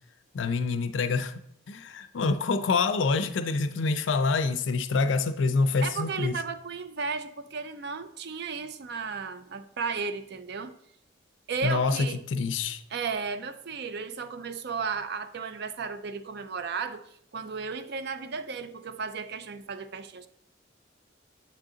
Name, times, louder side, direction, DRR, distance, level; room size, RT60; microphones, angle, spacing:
voice 1, 0.3-1.3 1.7-6.4 11.6-12.8, left 4 dB, 75° left, 0.4 m, -26 dB
voice 2, 5.8-10.7 11.5-12.2 12.9-17.0 17.3-20.3, right 5 dB, 55° right, 0.5 m, -34 dB
7.3 x 3.7 x 3.7 m
head